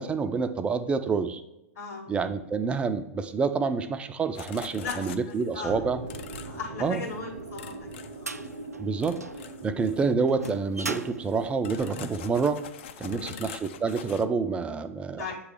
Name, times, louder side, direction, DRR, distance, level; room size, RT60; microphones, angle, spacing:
voice 1, 0.0-1.4 2.1-6.0 6.8-7.0 8.8-9.2 9.6-12.7 13.0-15.3, right 5 dB, 15° right, 9 dB, 0.4 m, -28 dB
sound 1, 4.3-5.6 6.1-6.6 6.9-7.2 7.5-8.7 9.0-10.1 10.4-10.6 10.9-14.3, left 9 dB, 45° left, 0.4 m, -44 dB
voice 2, 4.8-5.8 6.4-8.4 8.9-9.1 9.6-9.8 13.1-13.3 15.1-15.3, left 4 dB, 65° left, -2 dB, 1.7 m, -39 dB
sound 2, 5.7-12.0, right 3 dB, 50° right, 0.7 m, -42 dB
sound 3, 7.2-12.5, right 3 dB, 90° right, 0.4 m, -40 dB
8.0 x 3.1 x 4.8 m, 0.94 s
figure-of-eight pair, 105°, 8 cm